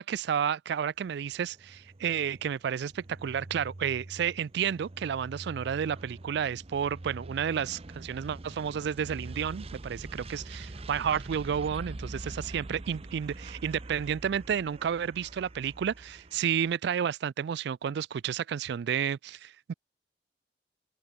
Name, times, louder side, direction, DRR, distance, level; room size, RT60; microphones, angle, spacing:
voice 1, 0.0-19.7, right 8 dB, 65° right, 0.3 m, -31 dB
sound 1, 1.0-16.7, right 2 dB, 35° right, 0.8 m, -44 dB
open air
head